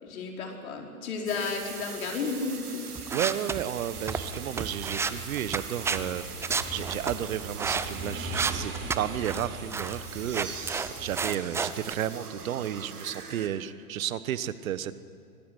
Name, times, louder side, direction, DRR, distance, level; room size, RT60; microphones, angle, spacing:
voice 1, 0.0-2.8, left 4 dB, 65° left, 1 dB, 5.1 m, -33 dB
sound 1, 1.3-13.5, right 5 dB, 85° right, 2.8 m, -43 dB
sound 2, 2.9-6.0 6.4-7.9 8.3-9.5 9.7-10.0 10.3-11.9, right 5 dB, 5° right, 0.5 m, -31 dB
voice 2, 3.1-6.2 6.7-14.9, right 10 dB, 65° right, 15 dB, 1.3 m, -32 dB
Motorcycle / Engine, 3.8-11.3, right 2 dB, 25° right, 4.0 m, -40 dB
25.0 x 18.5 x 8.3 m, 2.5 s
hypercardioid pair, 110°, 45 cm